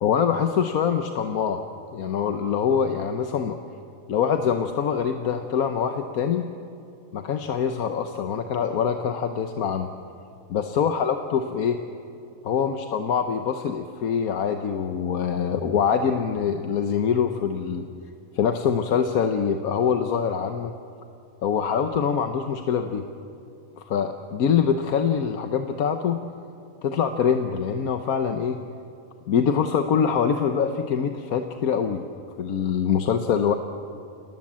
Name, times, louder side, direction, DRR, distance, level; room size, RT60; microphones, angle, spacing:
voice 1, 0.0-1.6 1.9-3.6 4.1-6.5 7.1-9.9 10.5-11.8 12.4-17.8 18.3-20.7 21.4-23.0 23.8-26.2 26.8-28.6 29.3-32.0 32.4-33.5, left 7 dB, 85° left, 7 dB, 1.4 m, -24 dB
27.0 x 19.0 x 7.4 m, 2.6 s
omnidirectional pair, 1.5 m